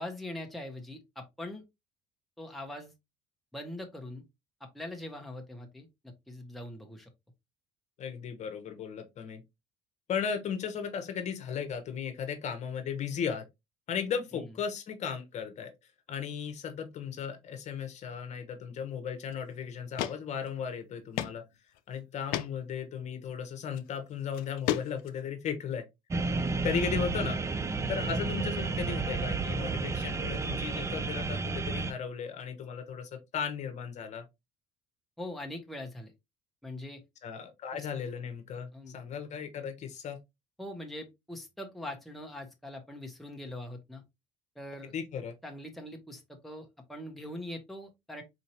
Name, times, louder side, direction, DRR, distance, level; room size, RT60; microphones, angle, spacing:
voice 1, 0.0-1.6 2.4-2.9 3.5-4.2 4.6-7.1 14.3-14.5 35.2-36.1 36.6-37.0 37.7-37.8 38.7-39.0 40.6-44.0 44.5-44.9 45.4-48.2, left 1 dB, ahead, 1.0 m, -42 dB
voice 2, 8.0-9.4 10.1-13.4 13.9-15.7 16.1-21.4 21.9-25.8 26.6-27.4 27.9-34.2 37.2-40.2 44.9-45.3, left 7 dB, 50° left, 1.1 m, -36 dB
sound 1, 19.3-19.4 20.0-20.2 20.5-20.6 21.2-21.4 21.7-21.8 22.3-22.5 23.6-23.8 24.3-25.2, left 13 dB, 75° left, 0.5 m, -32 dB
sound 2, 26.1-31.9, right 3 dB, 20° right, 0.5 m, -31 dB
4.3 x 2.6 x 2.9 m
supercardioid pair, 95°, 15 cm